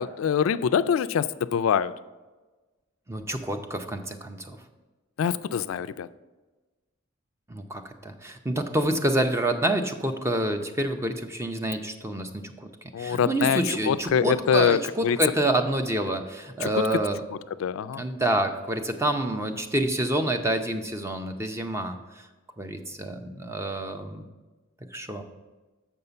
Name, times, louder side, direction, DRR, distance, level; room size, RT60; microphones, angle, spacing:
voice 1, 0.0-1.9 5.2-6.1 12.9-13.6 13.9-15.2 16.6-16.7 17.6-18.0, left 7 dB, 80° left, 15 dB, 0.3 m, -24 dB
voice 2, 3.1-4.6 7.5-12.7 13.0-17.2 18.0-22.2 22.6-24.3 24.9-25.2, right 1 dB, 15° right, 7 dB, 0.6 m, -28 dB
7.2 x 5.5 x 6.8 m, 1.2 s
head